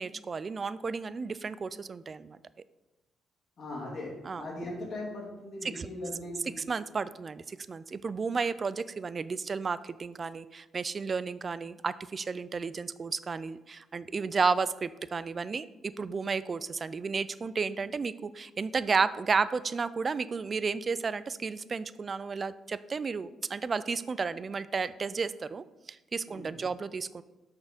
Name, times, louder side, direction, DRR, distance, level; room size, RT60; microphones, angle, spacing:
voice 1, 0.0-2.4 4.2-4.5 5.6-5.9 6.7-15.7 16.0-27.2, right 5 dB, 40° right, 16 dB, 0.3 m, -32 dB
voice 2, 3.6-6.6 26.3-26.7, left 1 dB, 55° left, -2 dB, 2.3 m, -39 dB
5.8 x 4.4 x 5.1 m, 1.0 s
cardioid pair, 90°, 0 cm